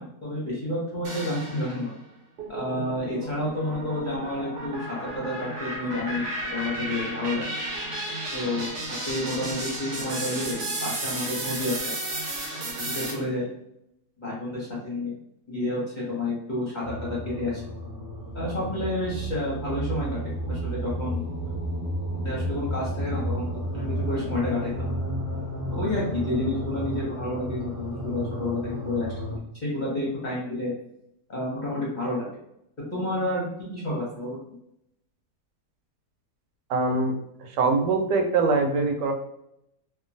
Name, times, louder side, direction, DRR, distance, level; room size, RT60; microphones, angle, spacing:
voice 1, 0.0-1.9 2.5-6.2 6.5-7.6 8.3-11.9 12.6-13.5 14.2-15.1 15.5-17.6 18.3-21.5 22.2-23.5 23.7-25.0 25.7-29.1 29.6-30.7 31.3-32.3 32.9-34.4, left 1 dB, 35° left, -7 dB, 0.8 m, -30 dB
sound 1, 1.0-1.9 2.4-13.1, right 1 dB, 70° right, 1.3 m, -33 dB
sound 2, 16.8-29.4, equal, 35° right, 0.9 m, -32 dB
voice 2, 36.7-39.1, right 3 dB, 85° right, 4 dB, 1.2 m, -23 dB
2.9 x 2.4 x 2.5 m, 0.79 s
omnidirectional pair, 1.8 m